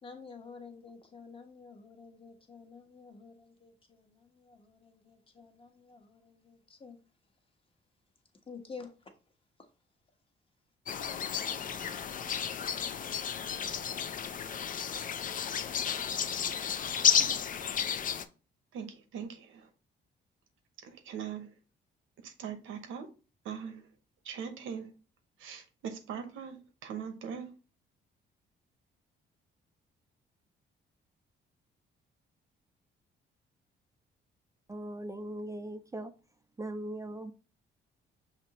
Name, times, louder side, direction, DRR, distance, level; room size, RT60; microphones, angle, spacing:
voice 1, 0.0-7.0 8.5-8.9, left 5 dB, 25° left, 1.1 m, -50 dB
sound 1, 10.9-18.2, left 8 dB, 45° left, 0.4 m, -32 dB
voice 2, 18.7-19.7 20.8-21.5 22.2-23.1 23.4-23.9 24.2-24.9 25.4-27.5, right 7 dB, 80° right, 0.9 m, -41 dB
voice 3, 34.7-36.1 36.6-37.3, right 1 dB, 15° right, 0.4 m, -39 dB
5.9 x 2.8 x 2.8 m
cardioid pair, 90°, 20 cm